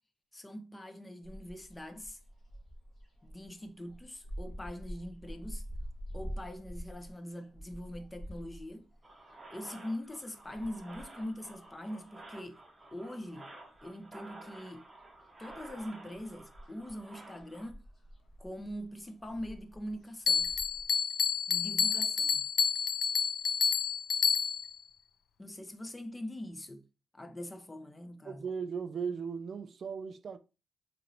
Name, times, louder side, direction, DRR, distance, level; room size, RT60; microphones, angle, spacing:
voice 1, 0.3-2.2 3.2-5.6 6.1-8.9 9.5-12.6 12.9-13.5 13.8-14.9 15.4-17.8 18.4-20.5 21.5-22.4 25.4-26.8 27.1-28.4, left 1 dB, 15° left, 0.5 m, -43 dB
sound 1, 1.2-12.8 13.1-14.4 14.7-20.9, equal, 40° left, 1.4 m, -47 dB
sound 2, 9.0-17.7, right 2 dB, 15° right, 0.8 m, -52 dB
Bell, 20.3-24.8, left 6 dB, 70° left, 0.4 m, -29 dB
voice 2, 28.3-30.4, right 6 dB, 50° right, 0.3 m, -37 dB
4.3 x 3.0 x 2.6 m
cardioid pair, 120°, 0 cm